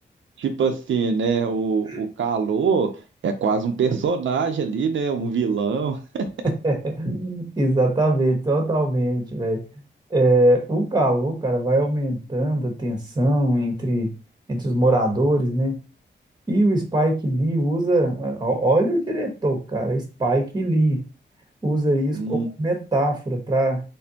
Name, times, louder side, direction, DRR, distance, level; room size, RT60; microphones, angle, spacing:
voice 1, 0.4-2.9 3.2-6.3 22.1-22.5, right 5 dB, 80° right, 5 dB, 0.6 m, -23 dB
voice 2, 6.4-9.6 10.1-14.1 14.5-15.8 16.5-21.0 21.6-23.8, right 1 dB, 20° right, 2 dB, 1.2 m, -22 dB
4.2 x 3.4 x 2.8 m, 0.32 s
wide cardioid pair, 150°, 19 cm